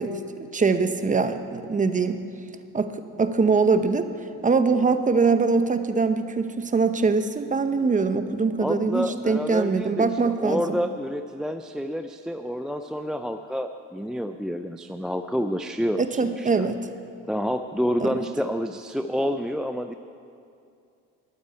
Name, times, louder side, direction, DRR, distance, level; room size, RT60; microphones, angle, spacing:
voice 1, 0.0-2.2 2.7-4.1 4.4-10.8 16.0-16.9 18.0-18.2, right 4 dB, 20° right, 9 dB, 0.9 m, -23 dB
voice 2, 8.6-16.7 17.3-19.9, equal, ahead, 7 dB, 0.4 m, -28 dB
11.5 x 9.1 x 8.9 m, 2.5 s
supercardioid pair, 80°, 35 cm